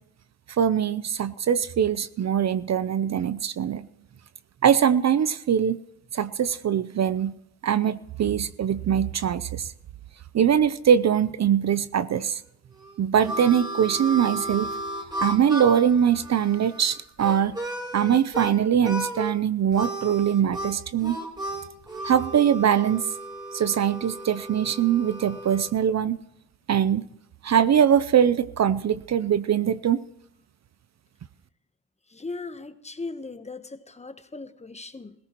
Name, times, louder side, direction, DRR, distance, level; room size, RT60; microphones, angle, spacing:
voice 1, 0.6-3.8 4.6-5.8 6.1-7.3 7.6-9.7 10.3-12.4 13.0-14.7 15.2-17.6 17.9-21.2 22.0-23.0 23.5-26.2 26.7-27.0 27.4-30.0, right 8 dB, 50° right, 0.7 m, -22 dB
Harmonica, 12.7-18.5 18.8-19.3 19.7-25.7, right 1 dB, 10° right, 3.6 m, -34 dB
voice 2, 32.1-35.1, left 3 dB, 20° left, 1.1 m, -38 dB
18.0 x 16.5 x 3.1 m
cardioid pair, 75°, 36 cm